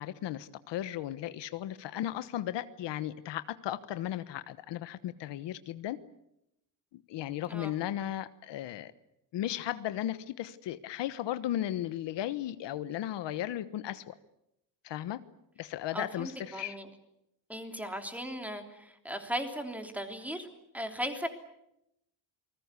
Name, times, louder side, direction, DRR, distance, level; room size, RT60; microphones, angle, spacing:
voice 1, 0.0-6.0 6.9-8.9 9.3-14.1 14.8-15.2 15.6-16.8, left 12 dB, 75° left, 13 dB, 1.2 m, -35 dB
voice 2, 15.9-16.9 17.5-20.5 20.7-21.3, equal, 5° right, 5 dB, 3.2 m, -37 dB
28.5 x 20.5 x 8.3 m, 0.83 s
cardioid pair, 145°, 43 cm